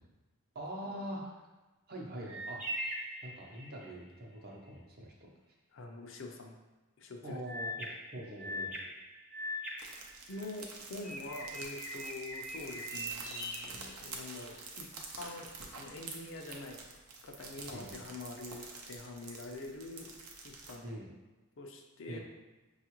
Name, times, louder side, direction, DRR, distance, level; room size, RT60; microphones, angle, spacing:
voice 1, 0.5-1.5 1.9-2.6 3.2-5.3 7.2-8.7 17.7-18.0 20.8-21.1 22.1-22.2, right 1 dB, 45° right, -2 dB, 0.7 m, -44 dB
sound 1, 2.3-4.0 7.5-10.6 11.0-14.5, equal, 5° right, 0.4 m, -42 dB
voice 2, 5.7-6.6 7.0-7.4 10.3-14.9 15.2-16.8 17.2-20.1 20.4-21.0 21.6-22.2, left 2 dB, 60° left, 2 dB, 0.5 m, -45 dB
sound 2, 9.8-20.8, right 4 dB, 90° right, 0.6 m, -48 dB
5.5 x 2.4 x 2.9 m, 1.2 s
head